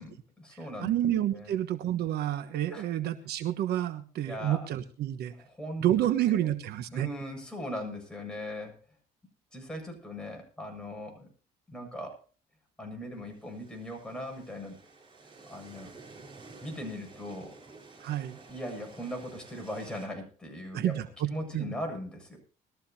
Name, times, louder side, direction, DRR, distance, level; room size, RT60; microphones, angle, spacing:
voice 1, 0.0-0.9 1.3-1.5 2.7-2.9 4.3-4.7 5.6-5.9 6.3-6.4 6.9-8.8 9.5-11.3 11.7-12.2 12.8-14.8 15.5-15.9 16.6-17.6 18.5-21.0 21.3-22.4, left 1 dB, 5° left, 1 dB, 7.6 m, -39 dB
voice 2, 0.5-5.3 5.8-7.1 18.0-18.4 20.7-21.7, right 12 dB, 70° right, 10 dB, 1.2 m, -29 dB
sound 1, 13.2-20.1, right 3 dB, 30° right, 6.7 m, -52 dB
21.0 x 14.0 x 2.8 m, 0.36 s
cardioid pair, 110°, 17 cm